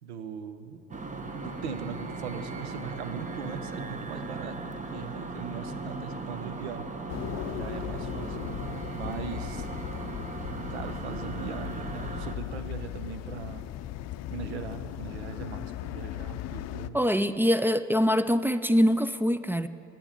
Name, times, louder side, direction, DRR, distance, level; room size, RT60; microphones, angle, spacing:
voice 1, 0.0-0.8 1.3-4.6 4.9-6.8 7.5-8.4 8.9-9.7 10.7-13.7 14.3-17.0, right 6 dB, 90° right, 9 dB, 0.9 m, -40 dB
sound 1, 0.9-12.4, right 3 dB, 25° right, 1.2 m, -37 dB
sound 2, 7.1-16.9, left 12 dB, 55° left, 0.5 m, -37 dB
voice 2, 16.9-19.7, equal, 5° right, 13 dB, 0.4 m, -24 dB
10.5 x 8.9 x 9.8 m, 2.6 s
hypercardioid pair, 70°, 32 cm